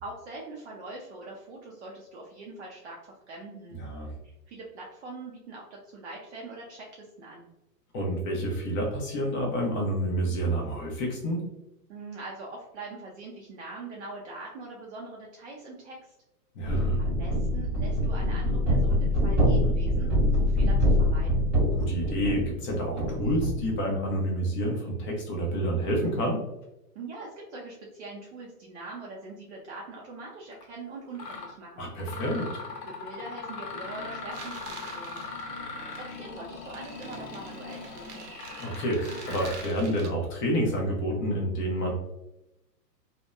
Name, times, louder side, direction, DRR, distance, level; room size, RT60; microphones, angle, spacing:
voice 1, 0.0-3.8 4.2-7.5 11.9-16.1 16.7-21.5 26.9-31.9 32.9-35.2 35.9-38.3, right 2 dB, 45° right, -2 dB, 0.5 m, -43 dB
voice 2, 3.7-4.1 7.9-11.5 16.5-17.0 21.7-26.4 31.8-32.5 38.6-41.9, right 1 dB, 30° left, -1 dB, 0.6 m, -28 dB
sound 1, 16.7-23.7, left 1 dB, 5° right, 0.7 m, -25 dB
Mechanisms, 30.5-30.6 31.1-31.5 32.0-39.8, left 3 dB, 80° left, 0.7 m, -40 dB
sound 2, 34.3-40.1, right 4 dB, 75° right, 0.8 m, -47 dB
2.6 x 2.1 x 2.2 m, 0.93 s
hypercardioid pair, 135°, 48 cm